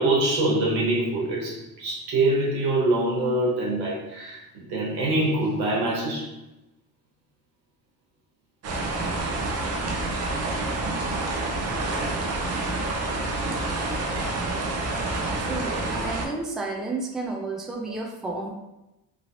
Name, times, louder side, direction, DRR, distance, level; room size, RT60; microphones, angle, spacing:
voice 1, 0.0-6.3, right 2 dB, 90° right, -3 dB, 1.3 m, -24 dB
sound 1, 8.6-16.3, right 2 dB, 40° right, 0.6 m, -28 dB
voice 2, 15.4-18.5, right 3 dB, ahead, -1 dB, 0.3 m, -32 dB
3.0 x 2.7 x 2.8 m, 0.90 s
cardioid pair, 130°, 38 cm